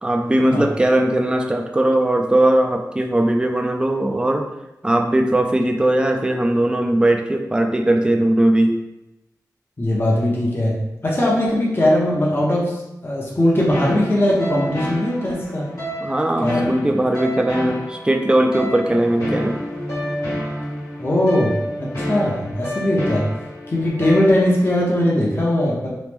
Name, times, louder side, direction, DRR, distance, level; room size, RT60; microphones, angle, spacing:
voice 1, 0.0-4.5 4.8-8.7 16.0-19.6, right 1 dB, 15° right, 4 dB, 0.3 m, -19 dB
voice 2, 9.8-15.7 16.4-16.7 21.0-23.3 23.7-25.9, left 1 dB, 35° left, -4 dB, 0.6 m, -20 dB
sound 1, 13.7-24.7, equal, 55° left, 1.1 m, -29 dB
3.0 x 2.0 x 3.3 m, 0.94 s
wide cardioid pair, 70°, 7 cm